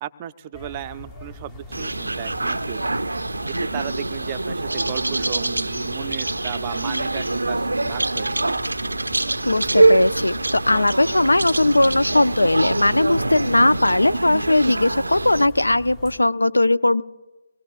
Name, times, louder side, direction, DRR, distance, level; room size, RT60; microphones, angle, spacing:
voice 1, 0.0-3.0 3.5-8.6, right 11 dB, 25° right, 11 dB, 0.4 m, -35 dB
sound 1, 0.5-16.2, left 1 dB, 15° left, 0.7 m, -41 dB
sound 2, 1.7-15.5, right 2 dB, 85° right, 0.4 m, -24 dB
voice 2, 9.4-17.0, left 2 dB, 90° left, 14 dB, 0.4 m, -19 dB
25.0 x 18.5 x 2.4 m, 1.1 s
figure-of-eight pair, 155°, 0 cm